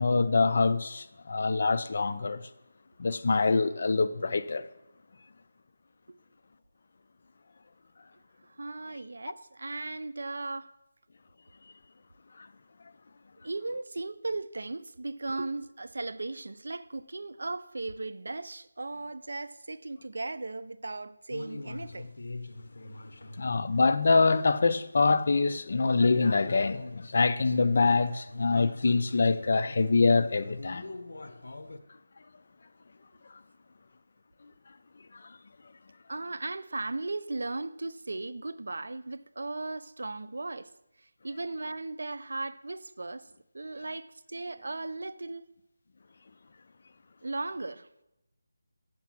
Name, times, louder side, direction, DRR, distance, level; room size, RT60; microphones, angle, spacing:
voice 1, 0.0-2.4 3.0-4.7 23.4-30.9, left 4 dB, 45° left, 0.4 m, -25 dB
voice 2, 8.6-10.7 13.4-22.1 36.1-40.7 41.2-43.3 43.5-45.5 47.2-47.9, right 2 dB, 75° right, 0.4 m, -37 dB
sound 1, 21.3-24.8 25.1-25.2 25.8-31.8, left 2 dB, 70° left, 0.8 m, -42 dB
8.3 x 5.8 x 6.0 m
figure-of-eight pair, 175°, 0 cm